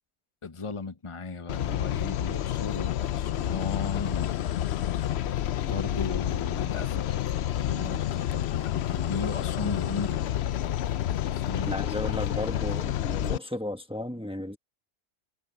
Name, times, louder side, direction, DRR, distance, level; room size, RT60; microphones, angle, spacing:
voice 1, 0.4-4.6 5.7-7.3 7.6-10.2 11.3-12.1, left 4 dB, 25° left, 1.0 m, -36 dB
sound 1, 1.5-13.4, left 11 dB, 65° left, 0.8 m, -29 dB
voice 2, 11.7-14.6, left 1 dB, 5° right, 1.2 m, -34 dB
omnidirectional pair, 1.3 m